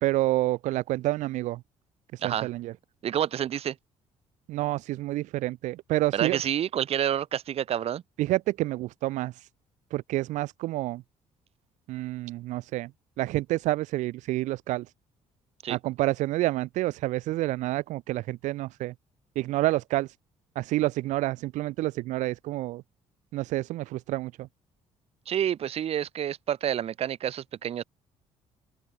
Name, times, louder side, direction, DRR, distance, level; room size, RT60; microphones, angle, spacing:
voice 1, 0.0-1.6 2.1-2.7 4.5-6.4 8.2-9.3 9.9-11.0 11.9-12.9 13.2-14.8 15.7-18.9 19.4-20.1 20.5-22.8 23.3-24.5, right 17 dB, 85° right, 1.0 m, -28 dB
voice 2, 3.0-3.8 6.1-8.0 15.6-15.8 25.3-27.8, right 10 dB, 55° right, 1.9 m, -28 dB
open air
cardioid pair, 115°, 12 cm